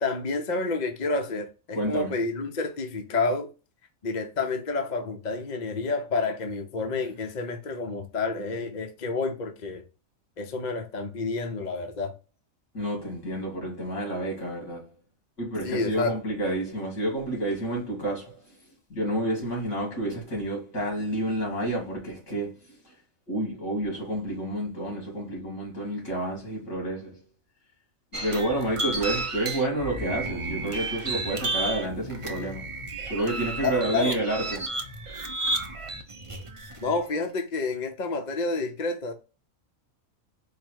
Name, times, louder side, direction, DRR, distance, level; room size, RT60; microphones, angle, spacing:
voice 1, 0.0-3.5 4.0-9.8 10.4-12.2 15.6-16.2 33.6-34.2 36.8-39.1, left 3 dB, 45° left, 0.6 m, -29 dB
voice 2, 1.7-2.1 12.7-14.9 15.4-18.4 18.9-22.6 23.3-27.2 28.1-32.7 33.0-34.8, right 1 dB, 65° left, 2.7 m, -29 dB
sound 1, 28.1-37.0, right 2 dB, 35° right, 0.6 m, -32 dB
4.7 x 2.1 x 4.6 m
omnidirectional pair, 1.4 m